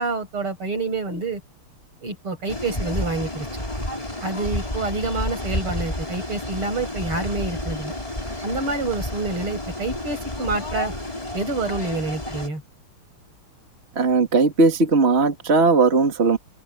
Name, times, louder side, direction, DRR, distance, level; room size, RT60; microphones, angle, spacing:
voice 1, 0.0-1.4 2.0-3.5 4.2-8.0 8.4-10.9 11.3-12.6, right 3 dB, 80° right, 7.8 m, -27 dB
sound 1, 2.5-12.5, left 1 dB, 15° left, 5.6 m, -30 dB
voice 2, 14.0-16.4, right 3 dB, 30° right, 2.4 m, -18 dB
open air
omnidirectional pair, 2.4 m